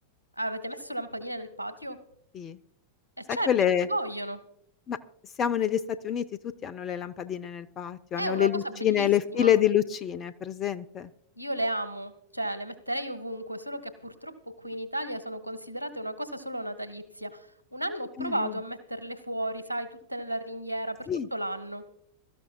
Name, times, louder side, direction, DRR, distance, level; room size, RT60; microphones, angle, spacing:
voice 1, 0.4-2.0 3.2-3.5 3.8-4.4 8.2-9.5 11.4-21.8, right 1 dB, 90° left, 10 dB, 1.3 m, -34 dB
voice 2, 3.3-3.9 4.9-5.0 5.4-11.1 18.2-18.6 21.1-21.3, left 10 dB, 30° left, 15 dB, 0.7 m, -27 dB
23.5 x 13.5 x 2.3 m, 0.69 s
figure-of-eight pair, 90°, 0 cm